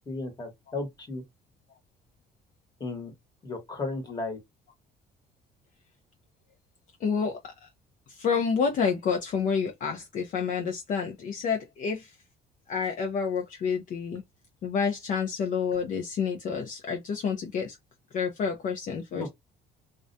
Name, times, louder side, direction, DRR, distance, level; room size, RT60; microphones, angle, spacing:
voice 1, 0.1-1.2 2.8-3.1 3.4-4.4 19.1-19.3, left 3 dB, 25° left, 1.1 m, -34 dB
voice 2, 7.0-7.7 8.1-12.1 12.7-14.2 14.6-17.8 18.1-19.3, left 6 dB, 50° left, 0.5 m, -29 dB
2.3 x 2.1 x 2.6 m
cardioid pair, 110°, 17 cm